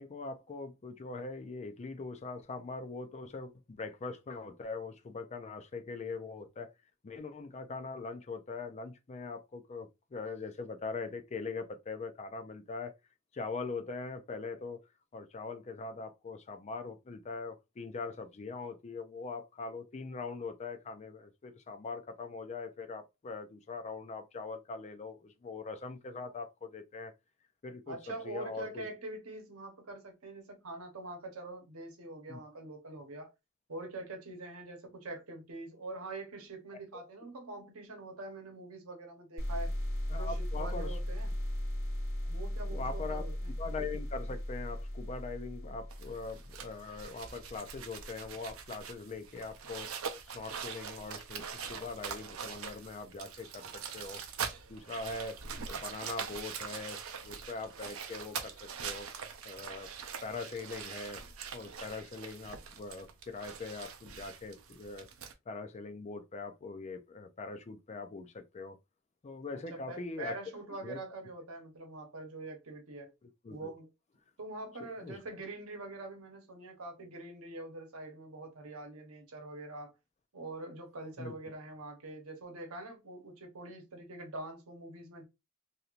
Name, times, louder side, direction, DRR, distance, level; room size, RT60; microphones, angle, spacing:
voice 1, 0.0-6.7 7.0-12.9 13.3-14.8 15.1-27.1 27.6-28.9 32.3-32.4 36.9-37.0 40.1-41.0 42.7-43.3 43.6-49.9 50.3-54.2 54.7-55.4 55.7-59.1 59.4-59.9 60.2-61.2 61.5-65.1 65.5-68.8 69.2-70.4 70.8-71.0 73.4-73.7 75.0-75.2 81.2-81.3, left 4 dB, 30° left, 0.4 m, -42 dB
voice 2, 27.9-33.3 33.7-39.7 40.1-41.4 42.3-43.5 69.5-73.1 73.5-73.9 74.4-79.9 80.3-85.2, right 2 dB, 90° right, 0.9 m, -44 dB
sound 1, 39.4-46.9, left 1 dB, 85° left, 1.1 m, -37 dB
sound 2, 45.9-65.3, right 6 dB, 70° right, 0.5 m, -43 dB
3.1 x 2.7 x 2.4 m
head